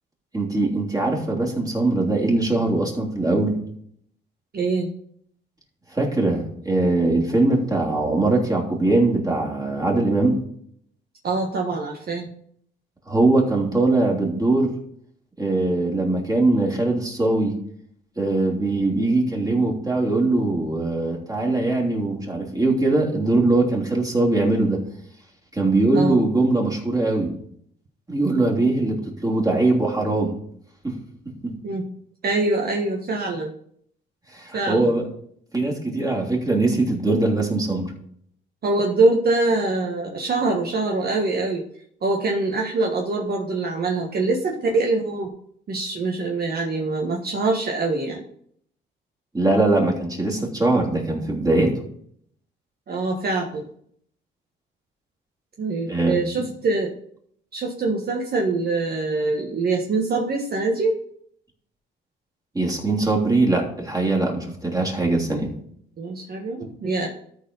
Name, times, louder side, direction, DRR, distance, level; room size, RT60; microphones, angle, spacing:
voice 1, 0.3-3.6 5.9-10.4 13.1-14.7 15.4-17.5 18.2-24.8 25.5-27.3 28.1-30.3 30.8-30.9 31.4-31.5 34.3-35.0 35.5-37.9 49.3-51.7 55.9-56.2 62.5-65.5, right 2 dB, 20° right, -1 dB, 3.3 m, -21 dB
voice 2, 4.5-4.9 11.2-12.3 25.9-26.2 31.6-31.9 32.2-33.5 34.5-34.9 38.6-41.6 42.0-45.3 45.7-48.2 52.9-53.6 55.6-56.9 57.5-61.0 66.0-67.1, right 3 dB, 50° right, 0 dB, 1.5 m, -24 dB
13.0 x 4.6 x 5.5 m, 0.66 s
cardioid pair, 90°, 20 cm